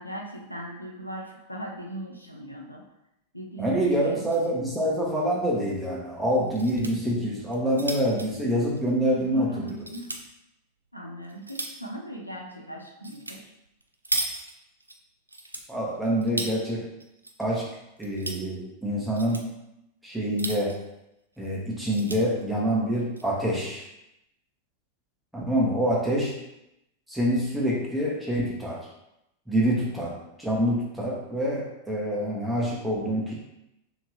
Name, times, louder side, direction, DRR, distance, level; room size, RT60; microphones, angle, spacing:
voice 1, 0.0-2.8 3.3-4.2 9.2-10.1 10.9-13.5, right 1 dB, 90° left, 0 dB, 0.5 m, -38 dB
voice 2, 3.6-9.5 15.7-16.9 17.4-17.7 18.0-19.5 20.0-20.8 21.4-23.9 25.3-26.3 27.1-28.8 29.5-30.1 30.4-33.3, equal, 5° right, -4 dB, 1.1 m, -26 dB
sound 1, 4.0-4.5 4.8-4.9 5.2-5.3 6.3-6.9 7.4-9.3 9.7-10.2 10.9-11.9 13.0-13.4 13.7-15.0 15.3-16.6 17.0-17.6 17.9-18.4 19.0-19.5 20.2-20.9 21.4-21.5 21.7-22.2 22.9-23.2, right 2 dB, 85° right, 0.4 m, -35 dB
3.5 x 2.9 x 3.2 m, 0.85 s
figure-of-eight pair, 90°, 0 cm